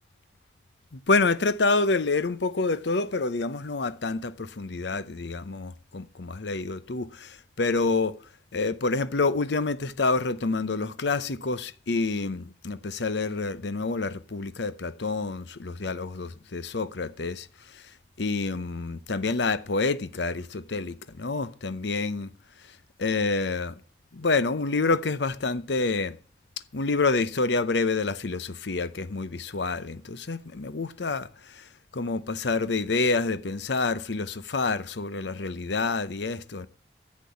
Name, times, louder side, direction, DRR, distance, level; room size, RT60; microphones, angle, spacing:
voice 1, 0.9-8.1 8.5-17.5 17.7-17.8 18.2-22.3 23.0-23.8 24.1-26.2 26.7-31.6 31.9-36.7, left 3 dB, 75° left, 0.8 m, -28 dB
10.5 x 7.5 x 8.5 m
head